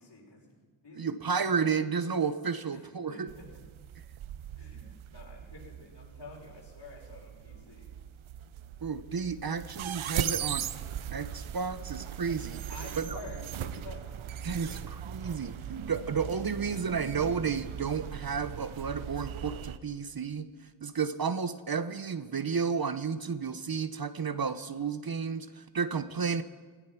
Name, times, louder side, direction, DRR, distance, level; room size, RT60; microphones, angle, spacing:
voice 1, 0.0-1.4 2.7-3.6 4.6-7.9 12.7-14.8, left 3 dB, 55° left, -2 dB, 6.3 m, -49 dB
voice 2, 0.9-3.3 8.8-10.7 11.1-12.6 13.0-13.2 14.4-20.5 20.8-26.4, right 6 dB, 50° right, 12 dB, 1.0 m, -32 dB
sound 1, 3.3-19.8, right 10 dB, 85° right, 0.7 m, -39 dB
17.0 x 13.5 x 6.0 m, 1.5 s
cardioid pair, 45°, 47 cm